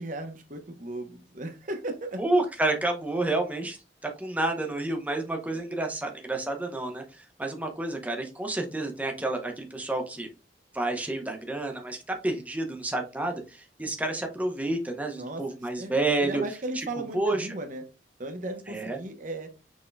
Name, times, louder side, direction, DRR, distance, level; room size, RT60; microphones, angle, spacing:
voice 1, 0.0-2.2 5.5-5.6 15.1-15.9 16.2-17.8 18.2-19.5, right 1 dB, 45° right, 6 dB, 0.9 m, -36 dB
voice 2, 2.2-3.8 4.0-10.3 10.7-12.0 12.2-16.4 16.7-16.9 17.1-17.6 18.7-19.0, right 2 dB, 10° right, 3 dB, 0.8 m, -29 dB
6.3 x 3.6 x 2.2 m, 0.30 s
head